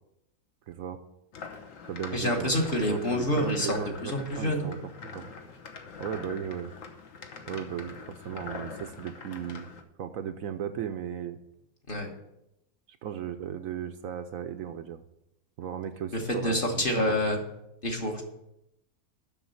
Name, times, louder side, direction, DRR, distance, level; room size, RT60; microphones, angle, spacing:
voice 1, 0.7-1.0 1.8-2.5 2.9-4.8 5.0-5.3 6.0-6.7 7.5-9.7 10.0-11.4 13.0-15.0 15.6-17.2, right 9 dB, 70° right, 8 dB, 0.9 m, -36 dB
sound 1, 1.3-9.8, left 5 dB, 60° left, 1.3 m, -43 dB
voice 2, 2.1-4.7 11.9-12.1 16.3-17.4 17.8-18.2, left 1 dB, 35° left, 1 dB, 1.4 m, -27 dB
7.1 x 6.3 x 7.0 m, 0.84 s
omnidirectional pair, 1.7 m